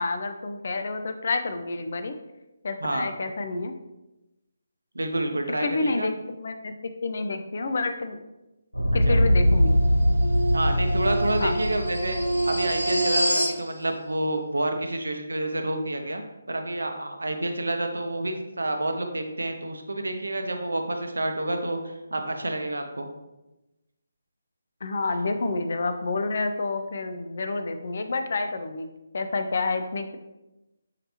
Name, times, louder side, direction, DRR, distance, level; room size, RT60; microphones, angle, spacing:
voice 1, 0.0-2.1 2.6-3.7 5.6-8.2 8.9-9.8 11.4-11.6 24.8-28.9 29.1-30.2, left 3 dB, 50° left, 8 dB, 0.4 m, -29 dB
voice 2, 4.9-6.1 9.1-9.2 10.5-12.2 12.5-23.1, right 1 dB, 70° right, 5 dB, 0.6 m, -29 dB
sound 1, 8.7-13.6, equal, 85° left, 1.1 m, -22 dB
5.7 x 3.3 x 2.8 m, 0.99 s
figure-of-eight pair, 145°, 0 cm